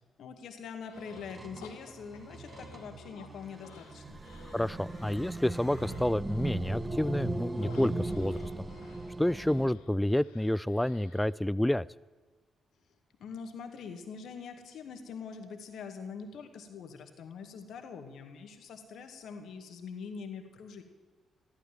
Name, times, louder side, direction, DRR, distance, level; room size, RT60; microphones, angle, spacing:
voice 1, 0.0-4.2 13.2-20.8, left 6 dB, 65° left, 6 dB, 2.0 m, -44 dB
sound 1, 0.8-1.3 1.6-3.3 3.6-6.7 7.6-11.3, left 7 dB, 85° left, 1.4 m, -55 dB
sound 2, 1.0-9.7, right 2 dB, 30° right, 2.9 m, -39 dB
voice 2, 4.5-8.7 9.2-11.9, left 1 dB, 10° left, 19 dB, 0.4 m, -29 dB
14.5 x 13.0 x 7.5 m, 1.3 s
hypercardioid pair, 40°, 0 cm